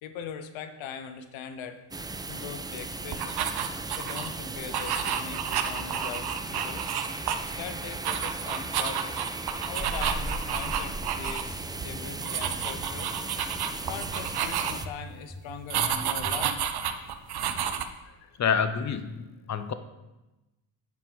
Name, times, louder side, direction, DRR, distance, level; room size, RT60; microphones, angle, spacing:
voice 1, 0.0-1.8 2.3-3.4 4.0-6.9 7.4-9.3 9.6-13.2 13.9-16.7 18.0-18.3, left 7 dB, 65° left, 9 dB, 1.0 m, -41 dB
sound 1, 1.9-14.9, right 3 dB, 10° right, 0.3 m, -36 dB
sound 2, 2.0-2.6 2.9-3.6 3.9-4.6 4.8-5.5 5.8-6.5 6.7-7.4 7.7-8.4 8.6-9.3 9.6-10.3 10.5-11.2 11.5-12.1 12.4-13.1 13.4-14.0 14.3-14.5 14.8-15.5 15.8-15.9 16.2-16.7, left 1 dB, 15° left, 1.1 m, -45 dB
sound 3, 3.1-4.3 4.7-7.6 7.9-11.4 11.7-11.9 12.2-15.0 15.7-17.8, right 8 dB, 50° right, 0.8 m, -31 dB
voice 2, 18.4-19.7, left 7 dB, 35° left, 11 dB, 0.8 m, -28 dB
7.9 x 5.2 x 5.3 m, 1.0 s
supercardioid pair, 70°, 49 cm